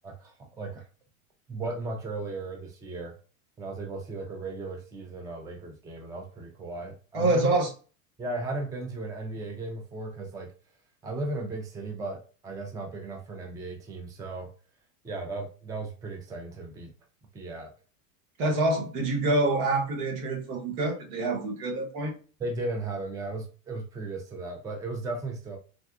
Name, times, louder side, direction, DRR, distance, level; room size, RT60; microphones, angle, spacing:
voice 1, 0.0-0.8 1.5-3.1 3.6-7.5 8.2-10.5 11.0-14.5 15.0-16.9 17.3-17.7 22.4-25.6, right 2 dB, 10° right, 3 dB, 0.4 m, -36 dB
voice 2, 7.1-7.7 18.4-22.1, right 2 dB, 70° right, 3 dB, 1.2 m, -26 dB
3.5 x 2.3 x 2.3 m, 0.36 s
supercardioid pair, 120°, 41 cm